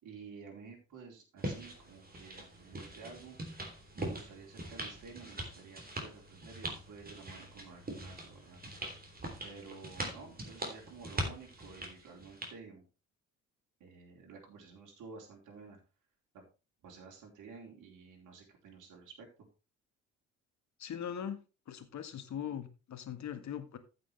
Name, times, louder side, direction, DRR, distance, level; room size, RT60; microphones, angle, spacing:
voice 1, 0.0-3.4 3.9-8.6 9.4-12.8 13.8-15.8 16.3-16.4 16.8-19.3, right 5 dB, 50° right, 3.8 m, -52 dB
sound 1, 1.4-12.5, right 1 dB, 25° right, 3.3 m, -42 dB
voice 2, 20.8-21.4 21.7-23.8, left 9 dB, 45° left, 1.6 m, -40 dB
14.5 x 6.2 x 3.3 m
figure-of-eight pair, 50°, 39 cm